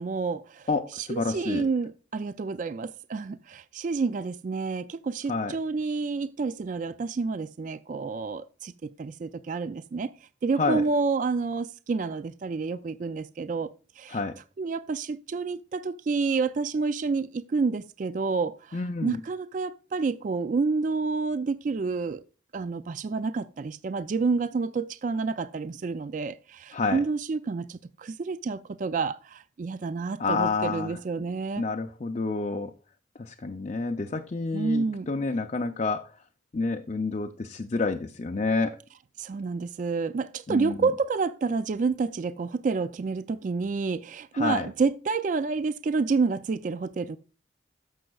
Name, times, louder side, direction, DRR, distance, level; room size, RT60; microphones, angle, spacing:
voice 1, 0.0-0.7 0.9-10.1 10.4-14.2 14.6-22.2 22.5-31.6 34.5-35.1 39.2-47.2, right 4 dB, 40° right, 0.3 m, -29 dB
voice 2, 0.7-1.7 5.3-5.6 10.6-10.8 14.1-14.4 18.7-19.2 26.7-27.0 30.2-31.0 31.6-32.7 33.2-36.1 36.5-38.8 40.5-40.9 44.3-44.7, left 3 dB, 35° left, 0.4 m, -29 dB
13.5 x 6.3 x 2.3 m
head